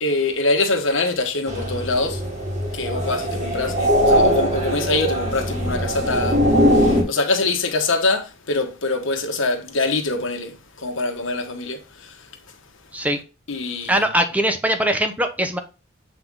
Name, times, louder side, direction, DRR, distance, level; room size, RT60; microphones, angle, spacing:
voice 1, 0.0-2.2 2.7-6.4 6.7-12.3 13.5-14.0, left 2 dB, 75° left, 1.4 m, -24 dB
sound 1, 1.5-7.0, equal, 35° right, 2.0 m, -20 dB
voice 2, 13.8-15.6, right 1 dB, 10° right, 0.8 m, -21 dB
8.0 x 3.8 x 3.8 m
head